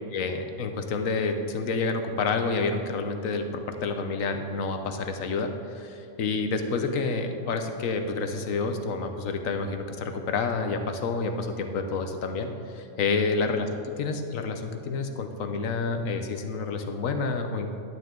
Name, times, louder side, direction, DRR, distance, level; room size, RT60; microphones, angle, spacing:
voice 1, 0.1-17.7, left 4 dB, 70° left, 6 dB, 1.2 m, -29 dB
12.5 x 9.7 x 3.8 m, 2.6 s
omnidirectional pair, 1.4 m